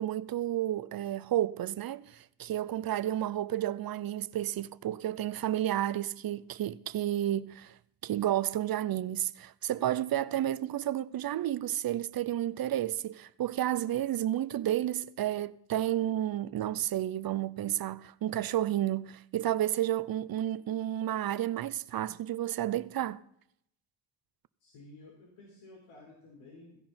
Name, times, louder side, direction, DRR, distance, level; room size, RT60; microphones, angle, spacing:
voice 1, 0.0-7.7 8.0-23.2, right 12 dB, 45° right, 0.6 m, -31 dB
voice 2, 24.6-26.8, left 2 dB, 85° left, 4.4 m, -53 dB
16.0 x 15.5 x 4.3 m
cardioid pair, 125°, 49 cm